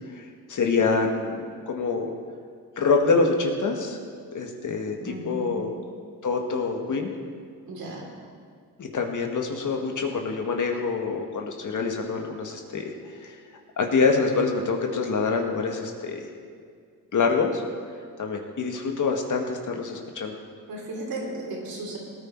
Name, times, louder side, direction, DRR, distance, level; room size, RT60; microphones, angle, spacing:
voice 1, 0.1-2.1 2.8-4.0 4.3-5.7 6.2-7.1 8.8-13.4 13.8-16.2 17.1-17.6 18.2-20.4, left 4 dB, 55° left, 3 dB, 1.9 m, -26 dB
voice 2, 5.0-5.6 7.7-8.1 20.7-22.0, right 2 dB, 80° right, -2 dB, 3.6 m, -35 dB
17.5 x 9.7 x 4.7 m, 2.1 s
cardioid pair, 65°, 36 cm